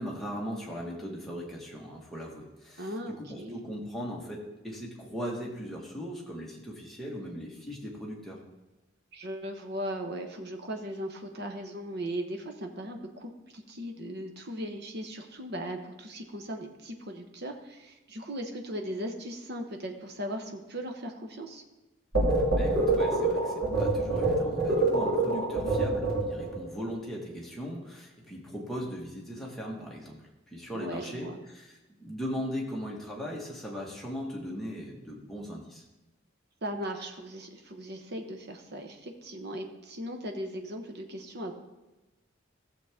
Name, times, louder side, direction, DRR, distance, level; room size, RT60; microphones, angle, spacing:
voice 1, 0.0-8.4 22.5-35.8, equal, ahead, -3 dB, 1.6 m, -38 dB
voice 2, 2.8-3.6 9.1-21.6 30.7-31.4 36.6-41.6, equal, 55° right, 4 dB, 1.1 m, -38 dB
sound 1, 22.1-26.6, right 2 dB, 80° right, 3.2 m, -26 dB
15.0 x 7.3 x 3.6 m, 1.1 s
head